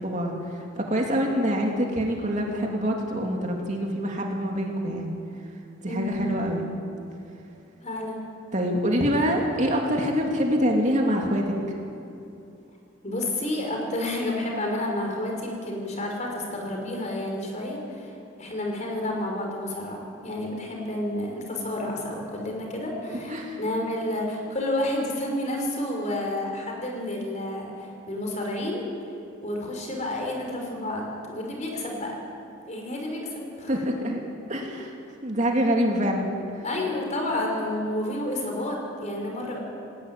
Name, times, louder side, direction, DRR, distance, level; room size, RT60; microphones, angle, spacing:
voice 1, 0.0-5.2 5.8-6.6 8.5-11.6 23.3-23.6 33.7-34.2 34.5-34.9 35.2-36.4, equal, 40° right, 0 dB, 2.7 m, -25 dB
voice 2, 5.9-6.2 7.8-8.2 13.0-28.9 29.4-32.1 32.7-33.7 36.6-39.6, left 1 dB, 35° left, 1 dB, 4.9 m, -30 dB
19.5 x 18.0 x 9.5 m, 2.7 s
head